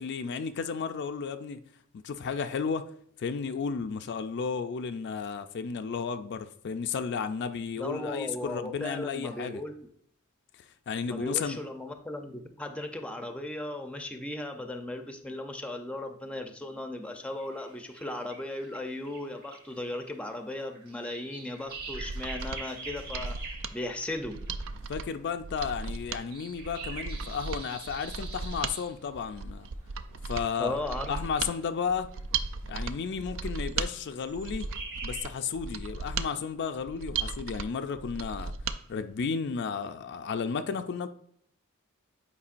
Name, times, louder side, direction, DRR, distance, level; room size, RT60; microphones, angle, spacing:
voice 1, 0.0-1.6 1.9-2.9 3.2-9.6 10.9-11.6 24.9-29.7 30.3-30.8 31.1-32.1 32.7-34.7 35.0-38.5 38.9-41.1, left 6 dB, 55° left, 0.4 m, -33 dB
voice 2, 7.8-9.8 11.1-23.4 23.7-24.4 30.6-31.1, left 1 dB, 5° left, 0.5 m, -36 dB
sound 1, 17.0-24.9 25.8-28.9 30.4-31.6 32.1-32.5 33.5-33.9 34.2-35.2, right 3 dB, 50° right, 2.0 m, -45 dB
Mechanisms, 21.7-38.8 39.1-39.2, right 4 dB, 65° right, 0.4 m, -36 dB
8.5 x 4.7 x 2.5 m
head